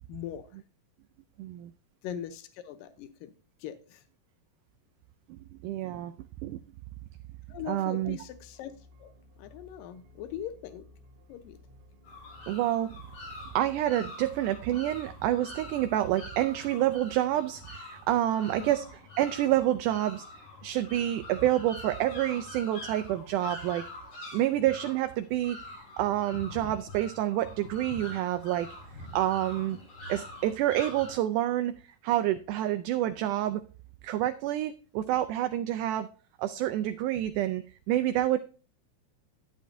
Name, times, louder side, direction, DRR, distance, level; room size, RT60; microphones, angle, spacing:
voice 1, 0.1-0.5 2.0-3.3 3.6-4.0 7.5-8.7 9.0-9.1 9.4-10.9 11.3-11.6 18.6-18.7 29.7-29.8, left 10 dB, 80° left, 11 dB, 2.5 m, -40 dB
voice 2, 1.4-1.7 5.3-6.1 6.4-6.6 7.7-8.2 12.5-12.9 13.6-20.3 20.6-23.8 24.3-25.6 26.0-28.7 29.1-29.8 30.1-33.6 34.0-36.1 36.4-38.4, right 13 dB, 80° right, 10 dB, 1.9 m, -28 dB
sound 1, 8.0-16.2, left 1 dB, 50° right, 1.8 m, -56 dB
sound 2, 12.0-31.1, left 2 dB, 65° left, 6.1 m, -45 dB
11.5 x 10.0 x 2.7 m, 0.37 s
omnidirectional pair, 4.0 m